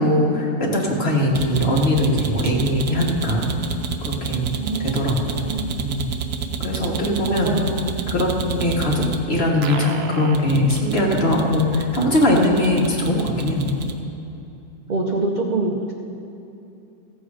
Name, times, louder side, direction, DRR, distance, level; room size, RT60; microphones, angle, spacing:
voice 1, 0.0-3.5 4.0-4.5 4.8-5.5 5.8-6.1 6.6-7.6 8.1-13.7, left 1 dB, 40° left, -2 dB, 1.7 m, -21 dB
sound 1, 1.3-9.1 9.6-13.9, right 6 dB, 70° right, 1.3 m, -29 dB
voice 2, 4.6-5.8 7.3-8.0 14.9-15.9, right 2 dB, 40° right, 0 dB, 0.6 m, -26 dB
15.0 x 7.6 x 5.0 m, 2.8 s
omnidirectional pair, 1.7 m